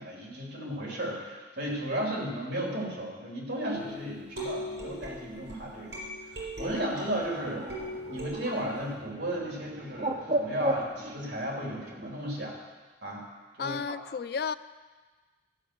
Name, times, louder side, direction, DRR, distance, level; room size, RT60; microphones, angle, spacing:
voice 1, 0.0-7.7 8.1-12.6 13.0-13.2 13.6-14.0, right 1 dB, 70° right, -2 dB, 3.3 m, -34 dB
sound 1, 3.7-7.3 7.7-8.9, equal, 90° right, 4.4 m, -40 dB
Bird, 6.6-12.2, right 1 dB, 35° right, 0.8 m, -36 dB
voice 2, 13.6-14.6, left 6 dB, 55° left, 13 dB, 0.3 m, -32 dB
13.5 x 5.7 x 7.8 m, 1.3 s
head